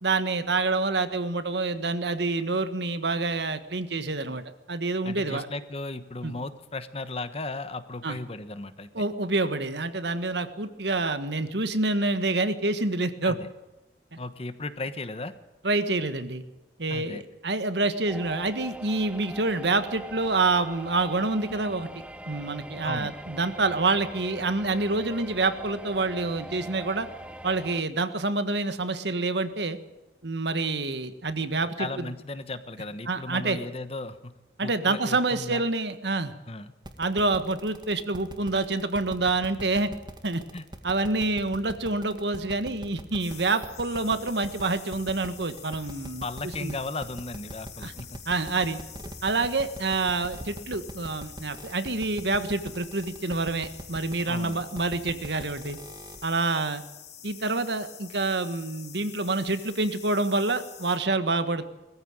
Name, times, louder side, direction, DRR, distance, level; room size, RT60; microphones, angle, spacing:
voice 1, 0.0-4.4 4.7-5.5 6.2-6.3 8.0-8.2 8.9-13.4 14.1-14.2 15.6-16.4 16.8-21.9 22.3-27.1 27.4-29.8 30.2-32.1 33.1-33.6 34.6-36.3 37.0-39.9 40.2-40.4 40.8-46.3 46.6-46.7 47.8-47.9 48.3-48.8 49.2-55.8 56.2-56.8 57.2-61.7, right 3 dB, 70° right, 10 dB, 1.6 m, -27 dB
voice 2, 5.0-8.9 13.2-13.5 14.2-15.3 16.9-17.2 22.8-23.1 31.8-34.3 34.6-35.6 36.5-36.7 40.5-40.6 46.2-48.1 49.3-49.4 54.3-54.6, left 2 dB, 35° left, 12 dB, 1.2 m, -36 dB
sound 1, 18.1-27.8, right 1 dB, 5° right, 0.6 m, -42 dB
sound 2, 36.8-56.3, right 1 dB, 25° right, 1.9 m, -41 dB
sound 3, 43.2-61.0, left 10 dB, 60° left, 3.7 m, -47 dB
21.0 x 14.5 x 9.0 m, 1.0 s
head